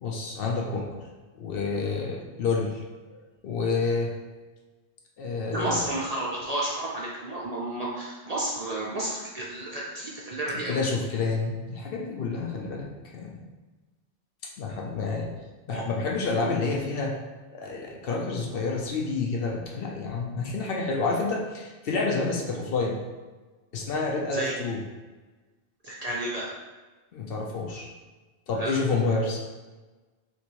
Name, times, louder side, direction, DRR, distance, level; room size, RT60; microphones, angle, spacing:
voice 1, 0.0-0.9 1.3-2.8 3.1-4.1 5.2-5.9 10.7-13.5 14.6-15.3 15.7-17.1 17.5-23.0 23.7-24.8 27.1-27.9 28.5-29.4, left 3 dB, 65° left, 0 dB, 0.7 m, -29 dB
voice 2, 5.5-10.7 15.7-15.8 24.3-24.5 25.8-26.5 28.5-28.7, right 1 dB, 50° right, -4 dB, 0.5 m, -31 dB
3.1 x 2.9 x 4.4 m, 1.3 s
omnidirectional pair, 1.1 m